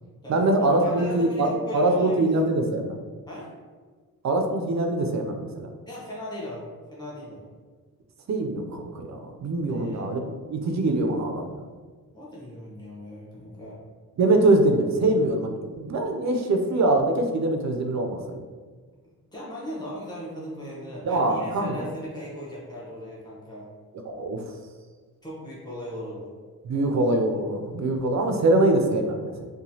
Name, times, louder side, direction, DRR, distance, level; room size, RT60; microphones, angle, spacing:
voice 1, 0.3-3.0 4.2-5.7 8.3-11.6 14.2-18.4 21.1-21.9 24.2-24.4 26.6-29.5, right 2 dB, 55° right, 4 dB, 0.4 m, -23 dB
voice 2, 0.8-2.4 3.3-3.5 5.9-7.5 9.7-10.1 12.1-13.8 19.3-23.7 25.2-26.3, equal, 10° left, -7 dB, 0.9 m, -38 dB
2.9 x 2.2 x 2.7 m, 1.5 s
cardioid pair, 75°, 35 cm